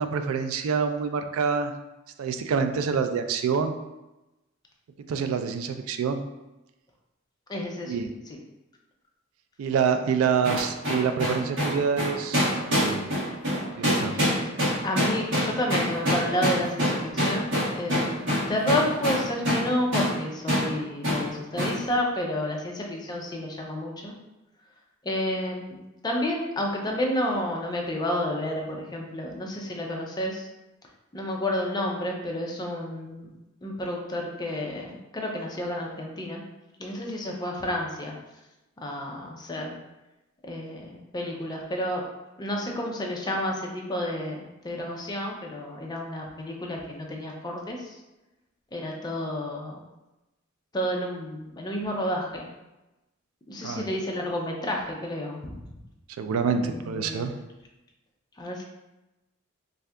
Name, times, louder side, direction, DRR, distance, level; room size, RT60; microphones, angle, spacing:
voice 1, 0.0-1.7 2.2-3.7 5.1-6.2 7.9-8.1 9.6-13.1 13.8-14.1 53.6-53.8 56.2-57.3, right 6 dB, 90° right, 8 dB, 0.3 m, -26 dB
voice 2, 7.5-7.9 8.3-8.4 14.1-14.3 14.8-24.1 25.0-25.8 26.0-30.5 31.1-33.3 33.6-36.4 36.8-38.2 38.8-39.8 40.5-42.0 42.4-48.0 48.7-49.8 50.7-52.5 53.5-55.5 56.5-57.3 58.4-58.6, left 1 dB, 20° left, 0 dB, 0.4 m, -30 dB
sound 1, 10.4-19.7 19.9-20.1 20.5-20.7 21.0-21.2 21.6-21.8, equal, 65° right, 1.2 m, -25 dB
2.6 x 2.4 x 3.3 m, 1.0 s
head